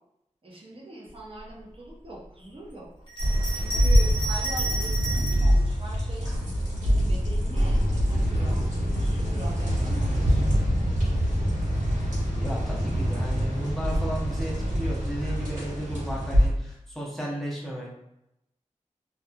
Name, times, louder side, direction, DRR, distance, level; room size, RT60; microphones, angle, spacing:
voice 1, 0.4-2.9 3.5-6.3 6.8-8.7 9.0-10.5, right 1 dB, 45° right, -4 dB, 0.7 m, -42 dB
Bell, 3.1-5.5 6.3-7.2, right 2 dB, 40° left, 1.3 m, -33 dB
sound 1, 3.2-16.5, equal, 75° right, 1.1 m, -25 dB
voice 2, 12.4-17.9, right 1 dB, ahead, -4 dB, 0.7 m, -34 dB
2.7 x 2.3 x 2.3 m, 0.83 s
wide cardioid pair, 70°, 13 cm